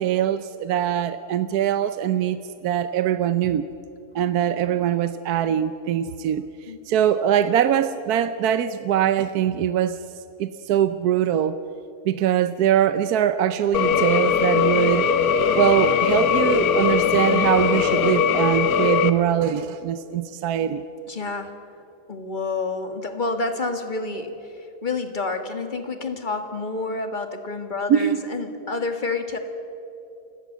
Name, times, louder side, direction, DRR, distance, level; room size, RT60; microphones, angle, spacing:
voice 1, 0.0-3.7 4.1-6.5 6.9-10.0 10.4-11.6 12.0-15.1 15.5-20.8 27.9-28.2, right 10 dB, 70° right, 12 dB, 1.2 m, -22 dB
voice 2, 4.2-4.6 6.7-6.8 21.1-21.5 22.1-29.4, left 3 dB, 30° left, 6 dB, 1.9 m, -29 dB
sound 1, 13.7-19.1, left 7 dB, 65° left, 1.4 m, -20 dB
29.0 x 17.5 x 7.3 m, 2.8 s
omnidirectional pair, 1.7 m